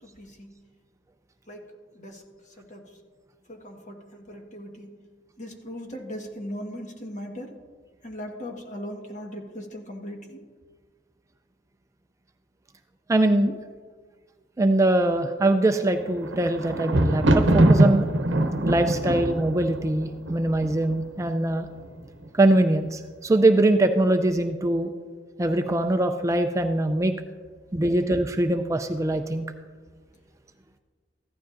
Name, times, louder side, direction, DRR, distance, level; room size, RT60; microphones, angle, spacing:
voice 1, 0.0-0.5 1.5-1.6 1.9-2.2 2.6-2.9 3.5-4.9 5.4-7.5 8.0-10.4, equal, 40° left, 2 dB, 1.5 m, -38 dB
voice 2, 13.1-13.6 14.6-18.1 18.7-21.7 22.3-24.9 25.4-27.1 27.7-29.5, right 1 dB, 15° right, 7 dB, 0.4 m, -22 dB
Thunder, 15.9-21.0 21.8-22.3 22.5-22.6, right 1 dB, 80° right, 0.8 m, -22 dB
15.0 x 12.0 x 2.6 m, 1.5 s
head